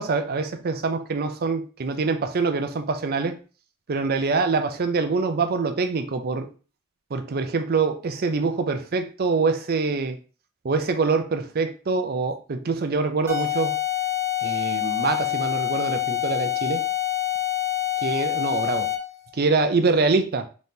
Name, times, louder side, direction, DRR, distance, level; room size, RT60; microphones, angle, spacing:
voice 1, 0.0-3.4 3.9-6.5 7.1-10.2 10.6-13.7 14.4-16.9 18.0-18.9 19.4-20.5, right 4 dB, 45° right, 0.5 m, -24 dB
sound 1, 13.3-19.2, left 14 dB, 10° right, 0.8 m, -26 dB
4.0 x 2.9 x 3.6 m
head